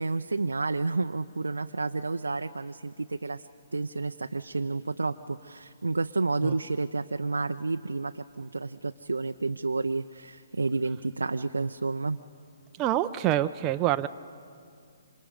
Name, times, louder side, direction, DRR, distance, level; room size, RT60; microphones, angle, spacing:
voice 1, 0.0-12.2, right 3 dB, 80° right, 8 dB, 0.5 m, -30 dB
voice 2, 12.8-14.1, right 13 dB, 25° right, 9 dB, 0.5 m, -26 dB
28.5 x 26.0 x 5.1 m, 2.3 s
figure-of-eight pair, 130°, 0 cm